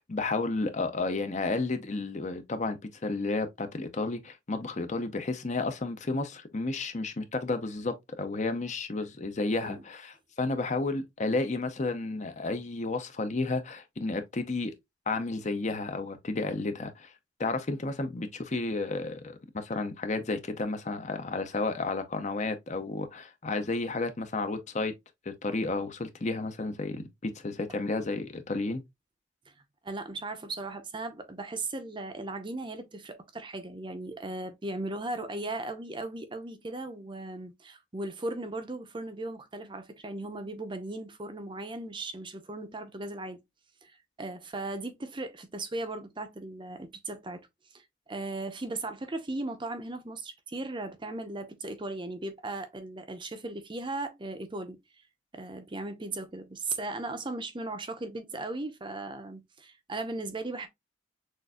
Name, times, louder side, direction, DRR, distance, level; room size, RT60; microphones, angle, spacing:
voice 1, 0.0-2.8 3.0-14.7 15.1-17.1 17.4-24.9 25.3-28.8, left 3 dB, 35° left, 0.7 m, -32 dB
voice 2, 9.5-9.8 29.5-29.6 29.8-43.4 43.8-47.4 47.7-54.8 55.3-60.7, right 2 dB, 25° right, 0.7 m, -37 dB
6.3 x 2.6 x 2.3 m
head